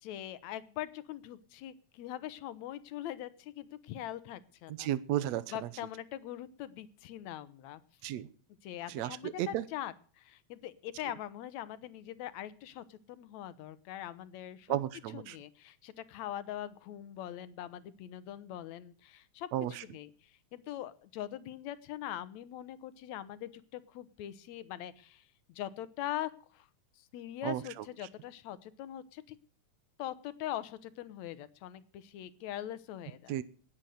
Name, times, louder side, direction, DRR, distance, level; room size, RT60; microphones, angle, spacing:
voice 1, 0.0-4.9 5.5-7.8 8.6-14.8 15.1-20.1 20.5-26.7 27.0-29.4 30.0-33.3, left 12 dB, 75° left, 15 dB, 2.2 m, -42 dB
voice 2, 4.8-5.4 8.0-8.3 8.9-9.6 14.7-15.4 19.5-19.7 27.4-27.6 33.3-33.4, right 13 dB, 70° right, 16 dB, 2.0 m, -33 dB
18.5 x 8.1 x 6.4 m, 0.44 s
omnidirectional pair, 3.3 m